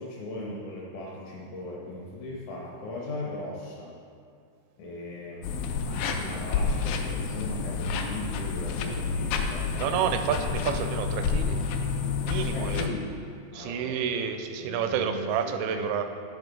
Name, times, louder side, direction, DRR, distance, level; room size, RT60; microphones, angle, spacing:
voice 1, 0.0-3.9 4.8-10.0 10.4-10.5 12.5-13.2 13.5-14.0 14.6-16.0, left 1 dB, 70° left, -3 dB, 1.9 m, -38 dB
sound 1, 5.4-12.9, left 5 dB, 85° left, 2.5 m, -29 dB
voice 2, 9.8-11.6 12.2-12.9 13.5-16.0, right 8 dB, 85° right, 8 dB, 2.4 m, -29 dB
10.0 x 3.9 x 5.1 m, 2.4 s
omnidirectional pair, 4.3 m